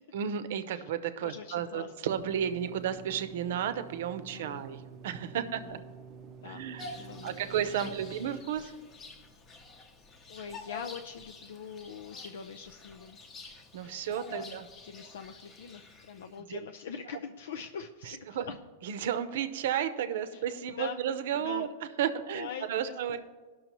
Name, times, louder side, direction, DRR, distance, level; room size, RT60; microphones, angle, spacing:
voice 1, 0.1-5.8 6.4-7.0 7.2-8.7 13.7-14.7 16.4-16.6 18.1-18.5 18.8-21.7 22.0-23.2, right 9 dB, 65° right, 11 dB, 0.7 m, -33 dB
voice 2, 1.2-1.9 4.3-4.7 5.3-5.8 6.4-6.6 6.9-7.4 7.8-8.2 10.3-13.2 14.3-18.6 20.3-20.4 20.8-21.0 21.4-21.7 22.3-23.0, left 7 dB, 85° left, 7 dB, 0.5 m, -43 dB
sound 1, 2.1-8.4, right 6 dB, 25° right, 0.6 m, -49 dB
Bird vocalization bird call bird song, 6.8-16.4, left 3 dB, 20° left, 0.8 m, -48 dB
17.5 x 6.2 x 3.0 m, 1.4 s
supercardioid pair, 160°, 0 cm